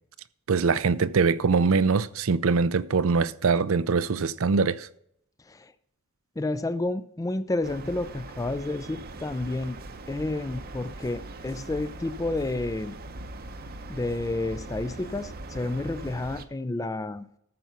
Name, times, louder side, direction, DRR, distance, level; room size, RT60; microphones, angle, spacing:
voice 1, 0.5-4.9, right 4 dB, 70° right, 0.5 m, -23 dB
voice 2, 6.4-9.8 10.1-12.9 13.9-17.3, left 2 dB, 15° left, 0.4 m, -30 dB
sound 1, 7.6-16.5, right 2 dB, 45° right, 0.8 m, -41 dB
14.0 x 5.6 x 5.7 m
head